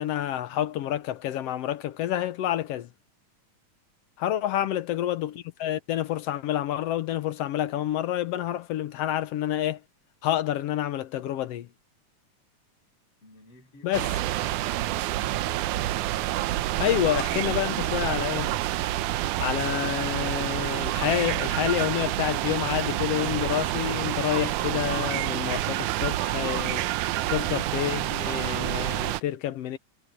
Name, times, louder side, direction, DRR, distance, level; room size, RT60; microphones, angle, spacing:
voice 1, 0.0-2.9 4.2-9.8 10.2-11.7 13.8-14.1 16.8-18.5 19.4-26.9 27.3-29.8, left 12 dB, 70° left, 1.6 m, -28 dB
voice 2, 4.4-4.7 13.2-14.4 14.7-15.5 27.1-27.6, left 1 dB, 50° left, 9.2 m, -55 dB
sound 1, 13.9-29.2, right 15 dB, 85° right, 2.2 m, -28 dB
omnidirectional pair, 3.5 m